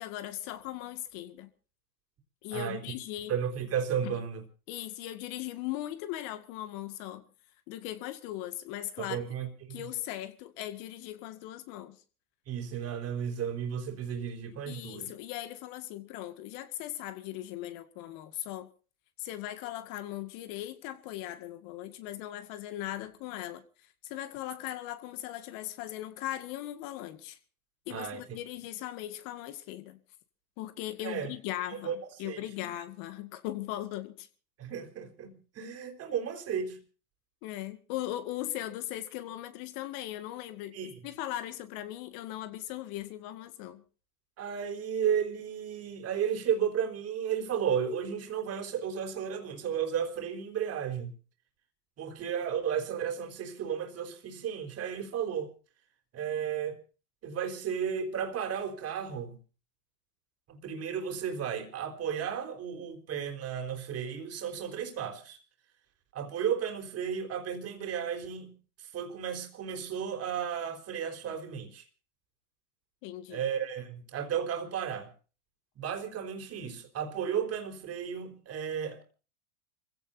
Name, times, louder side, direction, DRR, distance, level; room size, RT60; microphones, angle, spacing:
voice 1, 0.0-1.5 2.4-3.3 4.0-4.3 4.7-7.2 7.7-9.2 9.7-12.0 14.7-18.7 19.2-27.4 27.9-30.0 30.6-34.3 37.4-43.8 73.0-73.4, left 14 dB, 50° left, 2.1 m, -39 dB
voice 2, 2.5-2.8 3.3-4.4 9.0-9.8 12.5-15.1 27.9-28.4 31.0-31.3 31.7-32.0 32.2-32.7 34.6-36.8 40.7-40.9 44.4-51.1 52.0-55.5 56.1-56.8 57.2-59.4 60.5-65.4 66.1-71.8 73.3-75.1 75.8-79.0, right 8 dB, 35° right, 4.2 m, -34 dB
29.0 x 16.5 x 2.7 m
hypercardioid pair, 105°, 45 cm